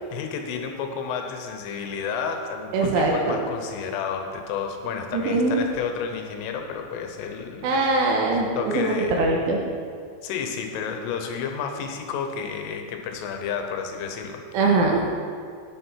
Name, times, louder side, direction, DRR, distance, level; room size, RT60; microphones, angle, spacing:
voice 1, 0.0-7.9 8.6-9.3 10.2-14.4, left 6 dB, 90° left, 5 dB, 3.6 m, -31 dB
voice 2, 2.7-3.4 5.1-5.6 7.6-9.6 14.5-15.1, right 3 dB, 85° right, -1 dB, 3.5 m, -22 dB
10.5 x 9.6 x 4.6 m, 2.2 s
omnidirectional pair, 5.5 m